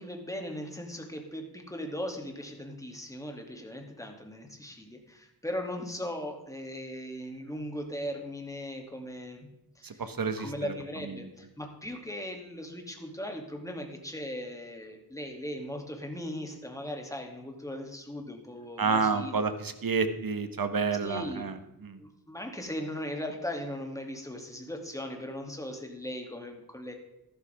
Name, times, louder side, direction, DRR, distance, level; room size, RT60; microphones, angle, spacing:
voice 1, 0.0-9.5 9.8-10.0 10.4-19.3 21.0-21.5 22.0-26.9, left 1 dB, 10° left, 2 dB, 2.7 m, -38 dB
voice 2, 9.8-10.7 11.2-11.3 18.8-22.0, right 4 dB, 65° right, 10 dB, 1.4 m, -30 dB
13.5 x 12.5 x 3.6 m, 0.91 s
wide cardioid pair, 75°, 37 cm